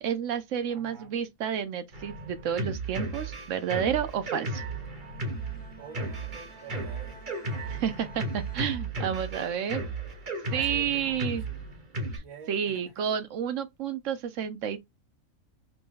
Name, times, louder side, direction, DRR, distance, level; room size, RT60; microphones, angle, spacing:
voice 1, 0.0-4.6 7.7-9.8 10.5-11.5 12.1-12.2 12.5-14.8, right 8 dB, 70° right, 1.0 m, -30 dB
voice 2, 0.7-1.1 5.8-7.2 10.5-11.7 12.1-13.1, right 6 dB, 90° right, 1.6 m, -48 dB
Drum kit, 1.9-12.2, right 2 dB, 40° right, 1.1 m, -35 dB
Bowed string instrument, 4.9-9.5, right 3 dB, 10° left, 0.7 m, -52 dB
3.0 x 2.8 x 3.6 m
omnidirectional pair, 1.4 m